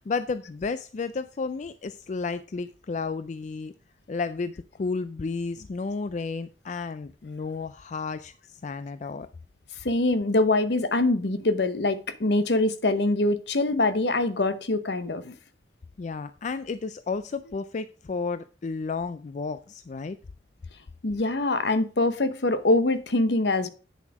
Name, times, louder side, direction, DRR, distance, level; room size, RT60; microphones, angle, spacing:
voice 1, 0.0-3.7 4.1-9.3 16.0-20.2, left 4 dB, 40° left, 0.4 m, -32 dB
voice 2, 9.8-15.3 21.0-23.7, left 2 dB, 65° left, 0.9 m, -24 dB
8.4 x 7.2 x 4.7 m
head